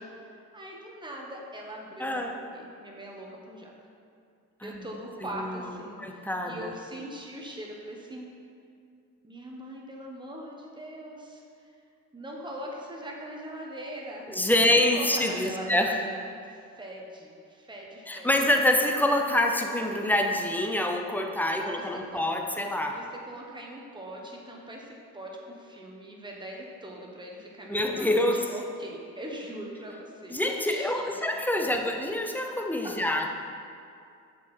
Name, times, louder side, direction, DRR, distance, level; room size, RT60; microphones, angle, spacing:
voice 1, 0.5-3.7 4.6-8.2 9.2-11.4 12.1-14.3 14.9-18.3 21.4-21.8 22.1-22.2 23.0-31.1 31.6-32.0, right 1 dB, 15° right, -1 dB, 1.2 m, -41 dB
voice 2, 2.0-2.4 4.6-4.9 5.3-5.7 6.0-6.7 14.3-16.0 18.1-23.0 27.7-28.5 30.3-33.3, left 1 dB, 5° left, 3 dB, 0.6 m, -26 dB
6.8 x 4.8 x 4.4 m, 2.5 s
cardioid pair, 90°, 30 cm